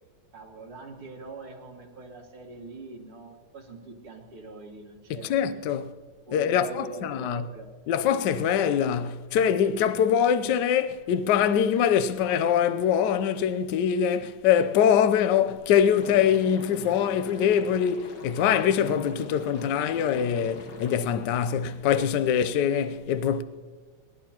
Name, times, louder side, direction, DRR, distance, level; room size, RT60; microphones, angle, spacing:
voice 1, 0.3-5.6 6.3-7.7 15.3-15.4, right 3 dB, 80° right, 2.8 m, -42 dB
voice 2, 5.1-5.9 6.3-7.4 7.9-23.4, left 8 dB, 65° left, 1.1 m, -23 dB
Liquid, 16.0-21.0, left 3 dB, 50° left, 1.9 m, -43 dB
28.0 x 11.0 x 2.9 m
omnidirectional pair, 2.4 m